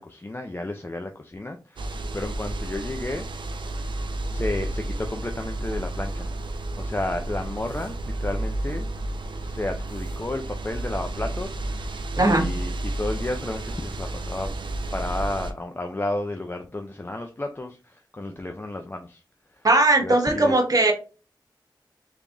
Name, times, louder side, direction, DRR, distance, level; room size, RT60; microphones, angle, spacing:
voice 1, 0.0-3.3 4.3-8.9 9.4-11.9 12.3-14.5 14.9-19.2 19.5-19.7 20.0-20.6, left 2 dB, 25° left, 4 dB, 0.5 m, -32 dB
sound 1, 1.8-15.5, right 2 dB, 80° right, 0.5 m, -31 dB
voice 2, 12.2-12.5 19.6-20.9, right 2 dB, 50° right, 2 dB, 1.1 m, -19 dB
3.4 x 3.4 x 2.5 m, 0.33 s
wide cardioid pair, 65°, 8 cm